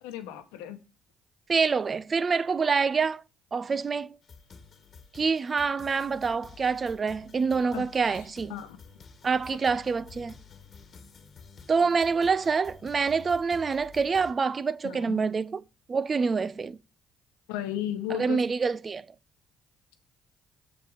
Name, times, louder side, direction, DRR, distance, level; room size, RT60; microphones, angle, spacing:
voice 1, 0.0-0.8 7.7-8.8 14.8-15.2 17.5-18.4, left 11 dB, 85° left, 1.1 m, -35 dB
voice 2, 1.5-3.2 3.5-4.1 5.1-8.5 9.2-10.3 11.7-15.6 15.9-16.8 18.2-19.0, right 5 dB, 40° right, 0.5 m, -26 dB
sound 1, 4.2-14.3, left 5 dB, 45° left, 1.4 m, -51 dB
6.7 x 5.0 x 4.9 m
supercardioid pair, 65°, 0 cm